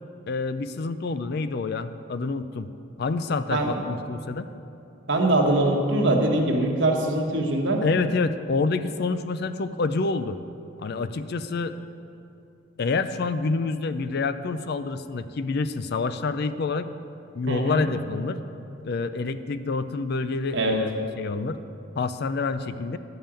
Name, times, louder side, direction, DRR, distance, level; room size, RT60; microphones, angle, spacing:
voice 1, 0.3-2.7 3.0-4.5 7.8-10.4 10.8-11.8 12.8-16.9 17.3-18.4 18.8-21.6 22.0-23.0, left 3 dB, 50° left, 12 dB, 0.4 m, -27 dB
voice 2, 5.1-7.8 17.5-17.9 20.5-20.8, right 2 dB, 60° right, 1 dB, 1.4 m, -22 dB
11.5 x 5.5 x 8.8 m, 2.7 s
head